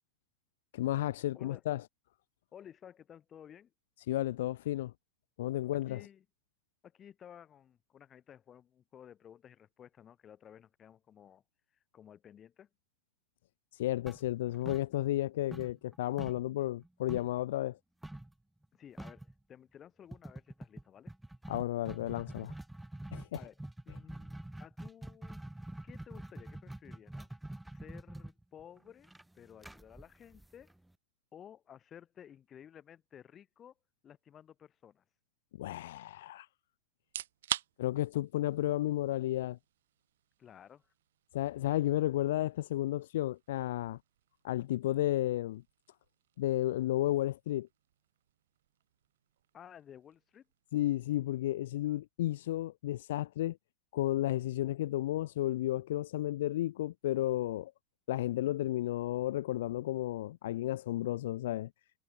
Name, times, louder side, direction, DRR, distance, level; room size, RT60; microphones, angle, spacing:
voice 1, 0.7-1.8 4.1-4.9 5.4-6.1 13.7-17.8 21.5-22.5 23.1-23.5 35.6-36.5 37.8-39.6 41.3-44.0 44.4-45.6 46.4-47.7 50.7-53.6 53.9-57.7 58.1-61.7, left 14 dB, 55° left, 0.3 m, -32 dB
voice 2, 2.5-3.7 5.6-6.2 6.8-11.4 11.9-12.7 18.7-21.1 23.3-23.6 23.9-25.4 25.8-27.3 27.7-30.7 31.3-33.7 34.0-35.0 40.4-40.9 49.5-50.5, left 9 dB, 25° left, 5.2 m, -55 dB
sound 1, 14.1-15.2 15.5-17.4 18.0-18.3 18.6-18.7 19.0-19.3 20.1-30.9, right 1 dB, 5° right, 1.1 m, -46 dB
sound 2, 37.0-51.8, right 12 dB, 60° right, 4.9 m, -48 dB
figure-of-eight pair, 90°, 0 cm